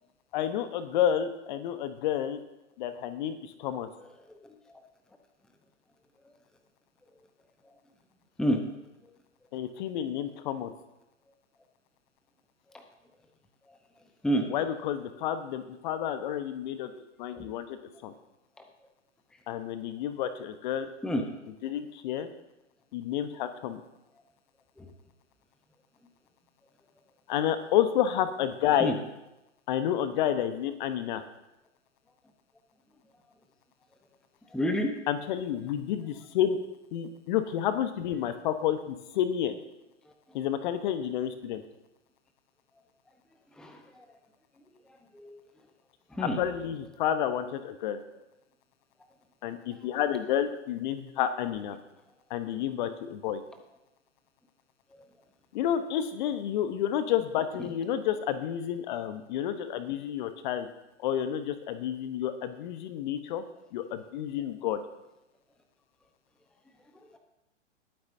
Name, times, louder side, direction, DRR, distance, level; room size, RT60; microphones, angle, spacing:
voice 1, 0.3-2.4 2.8-3.9 9.5-10.7 14.4-16.9 17.2-18.1 19.5-20.9 21.5-22.3 22.9-23.8 27.3-29.0 29.7-31.2 35.1-36.6 36.9-39.5 40.3-41.6 46.2-48.0 49.4-51.8 52.3-53.4 55.5-60.7 61.0-63.4 63.7-64.8, left 10 dB, 40° left, 10 dB, 1.1 m, -30 dB
voice 2, 34.5-34.9 43.6-44.0 45.1-45.4 46.1-46.4 54.9-55.0, equal, ahead, 4 dB, 0.9 m, -29 dB
20.5 x 9.2 x 2.7 m, 0.92 s
figure-of-eight pair, 115°, 37 cm